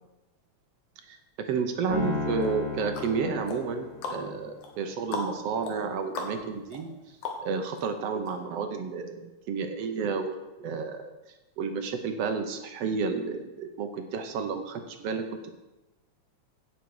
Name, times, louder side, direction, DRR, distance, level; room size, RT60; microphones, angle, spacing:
voice 1, 1.1-6.9 7.4-11.0 11.6-15.2, right 5 dB, 65° right, 6 dB, 1.7 m, -31 dB
Piano, 1.9-4.3, left 4 dB, 50° left, 4.5 m, -34 dB
sound 1, 2.4-7.8 8.3-8.4, left 4 dB, 90° left, 3.0 m, -39 dB
16.5 x 6.7 x 4.8 m, 1.0 s
omnidirectional pair, 3.3 m